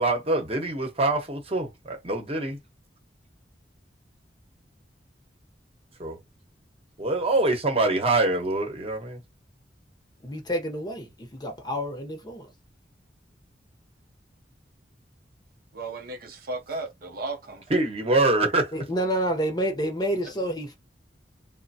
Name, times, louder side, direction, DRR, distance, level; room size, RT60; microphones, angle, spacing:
voice 1, 0.0-2.6 6.0-6.2 7.0-9.2 17.7-18.7, right 2 dB, 35° right, 0.9 m, -24 dB
voice 2, 10.2-12.5 18.7-20.7, right 1 dB, 25° left, 0.7 m, -29 dB
voice 3, 15.7-17.8 20.2-20.3, right 2 dB, 55° right, 0.6 m, -35 dB
3.1 x 2.1 x 2.7 m
head